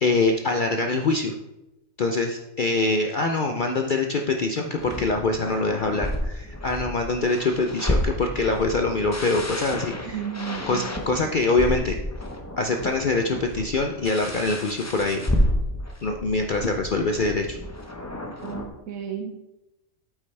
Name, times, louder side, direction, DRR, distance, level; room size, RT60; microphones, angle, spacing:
voice 1, 0.0-1.3 2.0-10.2 10.7-12.0 12.6-15.3 16.0-17.6, left 3 dB, 55° left, 4 dB, 0.6 m, -24 dB
sound 1, 4.8-18.7, left 1 dB, 15° left, 0.7 m, -31 dB
voice 2, 10.1-10.9 18.3-19.4, right 8 dB, 85° right, 2 dB, 1.2 m, -33 dB
8.6 x 8.4 x 3.3 m, 0.95 s
omnidirectional pair, 1.4 m